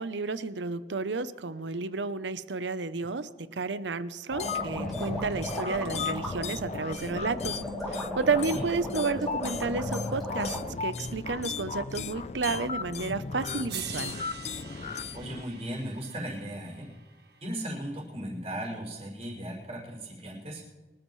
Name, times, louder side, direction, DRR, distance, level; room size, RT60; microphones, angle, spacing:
voice 1, 0.0-7.6 7.9-14.1, right 4 dB, 85° right, 13 dB, 0.8 m, -31 dB
sound 1, 4.3-15.4, left 4 dB, 35° left, 0.5 m, -36 dB
sound 2, 4.4-10.6, left 1 dB, ahead, 4.0 m, -36 dB
sound 3, 13.1-13.2 13.7-17.9 19.2-19.3, right 8 dB, 65° right, 1.6 m, -44 dB
voice 2, 15.1-16.9 17.4-20.6, right 1 dB, 35° right, -2 dB, 5.9 m, -37 dB
24.5 x 13.0 x 3.2 m, 1.3 s
head